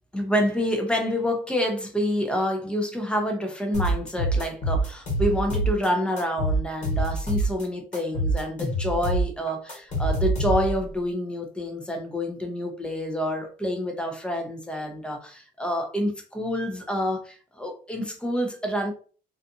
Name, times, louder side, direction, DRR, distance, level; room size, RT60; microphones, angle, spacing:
voice 1, 0.1-18.9, equal, 5° left, 0.6 m, -28 dB
sound 1, 3.7-5.9 6.2-7.6 7.9-10.9, right 2 dB, 50° left, 1.3 m, -25 dB
2.5 x 2.5 x 2.5 m
cardioid pair, 110°, 17 cm